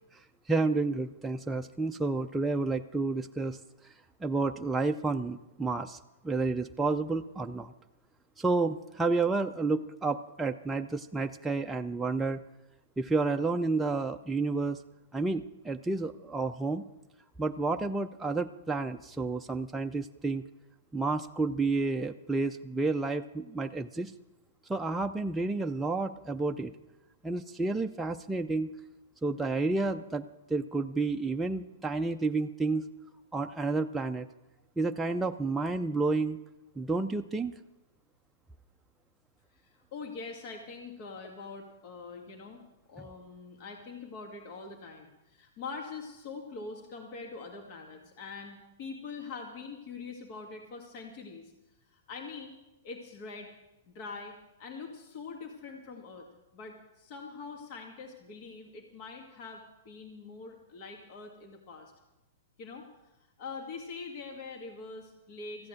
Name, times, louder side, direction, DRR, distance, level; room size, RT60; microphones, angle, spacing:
voice 1, 0.5-3.6 4.2-6.0 6.2-7.7 8.4-12.4 13.0-14.8 15.1-16.8 17.4-20.4 20.9-24.1 24.7-26.7 27.2-28.7 29.2-30.2 30.5-32.9 33.3-34.3 34.8-36.4 36.8-37.5, right 3 dB, 10° right, 4 dB, 0.5 m, -30 dB
voice 2, 39.5-42.6 42.9-51.5 51.9-52.5 52.8-53.5 53.9-56.3 56.5-61.9 62.6-62.9 63.4-65.7, left 4 dB, 50° left, 2 dB, 2.0 m, -44 dB
14.5 x 8.5 x 7.8 m, 0.98 s
hypercardioid pair, 115°, 0 cm